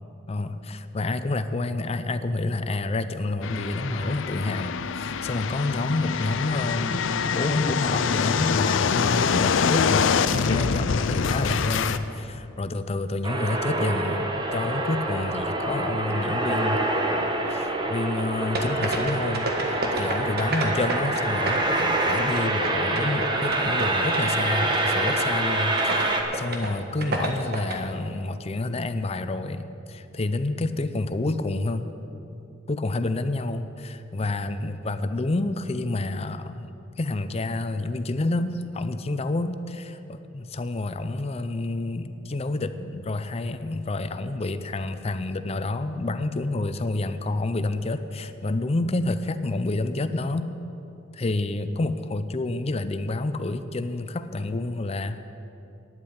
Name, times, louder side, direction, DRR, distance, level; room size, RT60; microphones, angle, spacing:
voice 1, 0.3-16.8 17.5-31.9 32.7-36.7 37.0-50.5 51.1-55.3, left 2 dB, 30° left, 11 dB, 0.5 m, -29 dB
sound 1, 3.4-12.0, left 6 dB, 85° left, 0.5 m, -25 dB
sound 2, 13.2-26.2, right 2 dB, 25° right, 1.1 m, -26 dB
sound 3, 18.6-21.2 21.5-23.9 24.1-24.5 24.7-24.8 25.1-25.4 25.8-26.1 26.3-26.7 27.0-27.8, right 2 dB, 55° right, 1.4 m, -29 dB
9.7 x 8.6 x 8.7 m, 2.9 s
head